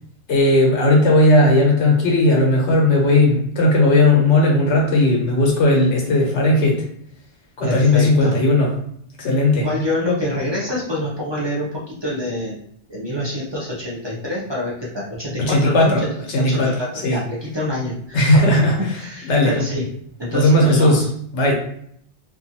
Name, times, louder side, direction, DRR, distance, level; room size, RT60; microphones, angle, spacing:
voice 1, 0.3-6.8 7.6-8.7 9.2-9.7 15.4-16.0 16.3-16.7 17.0-17.2 18.1-18.7 19.3-19.5 20.3-21.0 21.3-21.5, left 1 dB, 80° left, -1 dB, 1.1 m, -16 dB
voice 2, 7.6-8.4 9.5-12.6 12.9-18.4 18.8-19.8 20.2-21.1, left 1 dB, 40° right, -5 dB, 0.4 m, -26 dB
2.6 x 2.4 x 2.7 m, 0.66 s
omnidirectional pair, 1.2 m